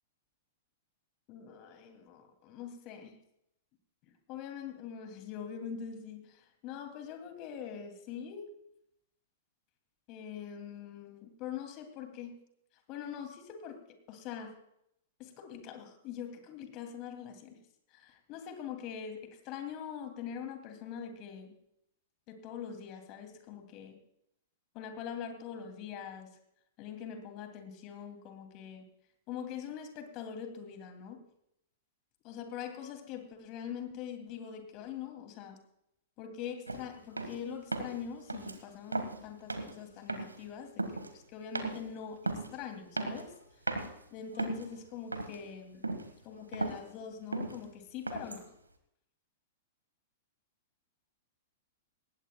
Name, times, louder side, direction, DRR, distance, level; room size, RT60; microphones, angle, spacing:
voice 1, 1.3-3.2 4.0-8.5 10.1-12.4 12.9-13.8 14.1-14.6 15.2-17.6 17.9-21.6 22.3-24.0 24.7-26.3 26.8-28.9 29.3-31.2 32.2-35.6 36.2-43.3 44.1-45.9 46.2-48.5, left 8 dB, 40° left, 6 dB, 2.7 m, -43 dB
sound 1, 36.7-36.9 37.2-37.4 37.7-38.0 38.3-38.6 38.9-39.2 39.5-39.8 40.1-40.5 40.8-41.1 41.6-41.8 42.3-42.5 43.0-43.4 43.7-43.9 44.3-44.8 45.1-45.5 45.8-46.1 46.4-46.8 47.3-47.6 48.1-48.5, right 2 dB, 90° right, 1.7 m, -36 dB
19.5 x 17.0 x 2.3 m, 0.77 s
figure-of-eight pair, 105°, 0 cm